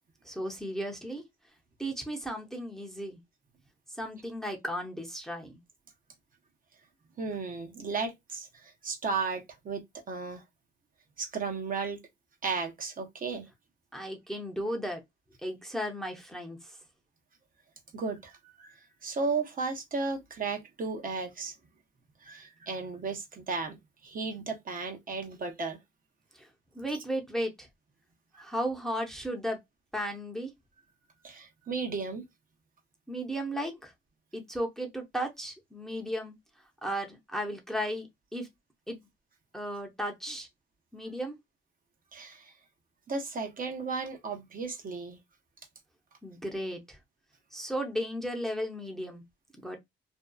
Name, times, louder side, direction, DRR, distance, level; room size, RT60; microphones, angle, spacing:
voice 1, 0.2-1.2 1.8-3.2 4.0-5.6 13.9-15.0 15.4-16.8 26.3-26.5 26.7-27.7 28.4-29.6 29.9-30.5 33.1-33.9 34.3-36.3 36.8-38.5 38.9-39.0 39.5-40.5 40.9-41.4 46.2-47.0 47.5-49.2 49.6-49.8, equal, ahead, 0.7 m, -35 dB
voice 2, 7.2-10.4 11.2-12.0 12.4-13.5 17.9-18.3 18.6-21.5 22.2-23.8 24.0-25.8 28.3-28.5 31.2-32.2 42.1-42.5 43.1-45.2, right 4 dB, 45° right, 0.8 m, -34 dB
2.7 x 2.3 x 2.2 m
cardioid pair, 90°, 20 cm